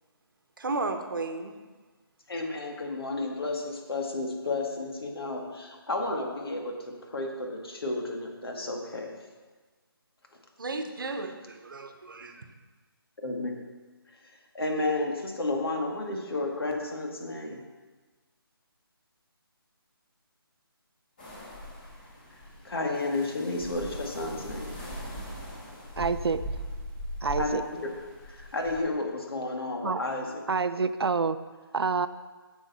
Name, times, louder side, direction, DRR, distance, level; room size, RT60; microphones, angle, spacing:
voice 1, 0.6-1.5 10.6-12.4, right 3 dB, 60° right, 7 dB, 1.0 m, -34 dB
voice 2, 2.3-6.7 7.1-9.1 13.2-13.5 14.5-17.6 22.6-24.8 27.4-27.9 28.3-30.4, left 2 dB, 70° left, 1 dB, 2.1 m, -32 dB
sound 1, 21.2-28.8, equal, 20° left, 1.7 m, -40 dB
voice 3, 26.0-26.4 27.2-27.6 29.8-30.0 30.5-31.4 31.7-32.1, right 5 dB, 80° right, 13 dB, 0.6 m, -27 dB
9.9 x 7.2 x 4.2 m, 1.3 s
hypercardioid pair, 175°, 13 cm